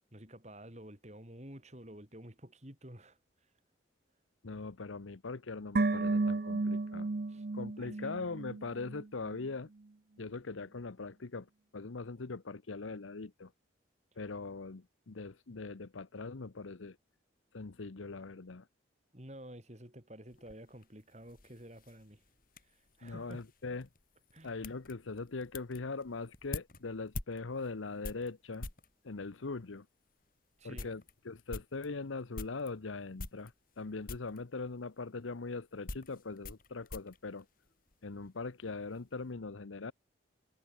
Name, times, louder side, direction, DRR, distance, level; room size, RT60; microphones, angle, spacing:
voice 1, 0.1-3.2 7.3-7.5 7.8-8.1 19.1-22.2 22.6-23.4 24.3-24.6 30.6-30.9, right 1 dB, 35° right, 4.7 m, -51 dB
voice 2, 4.4-7.1 7.5-9.7 10.2-11.5 11.7-13.5 14.2-17.0 17.5-18.7 23.0-23.9 24.4-28.7 29.0-29.9 30.6-37.5 38.0-39.9, left 3 dB, 85° left, 0.9 m, -41 dB
sound 1, 5.8-9.1 9.3-9.4, right 3 dB, 50° right, 0.6 m, -33 dB
sound 2, 20.3-28.9 29.7-29.8 30.2-30.3 30.6-32.7 33.2-33.8 34.1-34.4 35.3-38.2 38.4-39.0, left 2 dB, 45° left, 3.1 m, -47 dB
head